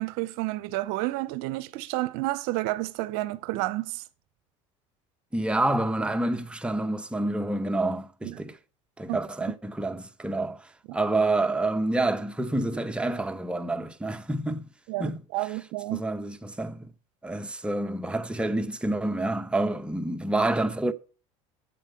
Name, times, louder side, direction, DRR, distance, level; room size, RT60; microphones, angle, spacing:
voice 1, 0.0-4.0 8.2-8.4 9.1-9.2 10.9-11.0 14.9-16.0, right 18 dB, 70° right, 0.7 m, -30 dB
voice 2, 5.3-8.6 9.0-10.6 10.9-14.6 15.0-15.5 15.9-16.9 17.2-20.9, right 2 dB, 5° right, 0.9 m, -28 dB
8.0 x 7.4 x 5.7 m
supercardioid pair, 90°, 16 cm